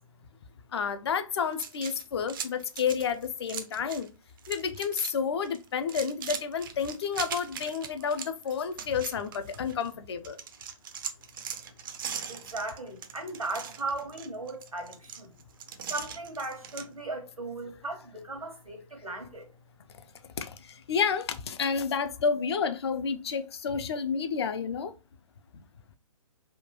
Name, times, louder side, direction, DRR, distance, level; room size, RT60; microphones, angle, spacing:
voice 1, 0.7-4.1 4.5-10.4 20.4-24.9 25.5-25.6, left 6 dB, 50° left, 0.4 m, -30 dB
sound 1, 1.5-4.1 4.4-5.1 5.4-9.9 10.2-16.9, right 8 dB, 40° right, 0.4 m, -40 dB
voice 2, 12.3-15.3 15.9-19.5, right 2 dB, 85° right, 1.2 m, -37 dB
3.5 x 2.2 x 2.9 m
figure-of-eight pair, 125°, 18 cm